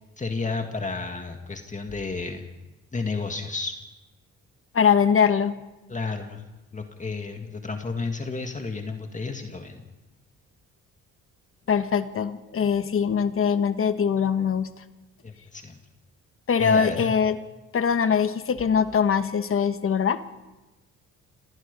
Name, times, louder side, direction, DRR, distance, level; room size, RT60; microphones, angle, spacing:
voice 1, 0.2-2.4 2.9-3.8 5.9-6.4 6.7-9.8 15.2-15.8 16.6-17.1, left 4 dB, 25° left, 4 dB, 1.9 m, -31 dB
voice 2, 4.7-5.6 11.7-14.7 16.5-17.4 17.7-20.2, left 7 dB, 45° left, 11 dB, 1.3 m, -22 dB
27.0 x 19.5 x 5.4 m, 1.1 s
cardioid pair, 90°, 30 cm